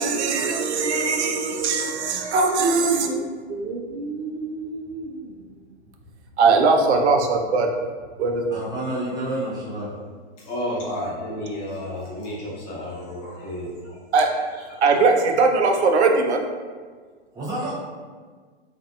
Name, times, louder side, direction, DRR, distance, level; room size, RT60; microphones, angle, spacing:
voice 1, 0.0-5.3 6.4-7.7 8.2-8.6 14.1-16.4, right 4 dB, 80° right, 0.5 m, -21 dB
voice 2, 8.5-10.0 17.3-17.8, right 1 dB, 10° right, 0.5 m, -29 dB
voice 3, 10.4-14.0 14.3-14.4, left 1 dB, 35° left, 0.9 m, -31 dB
2.6 x 2.5 x 2.4 m
hypercardioid pair, 125°, 33 cm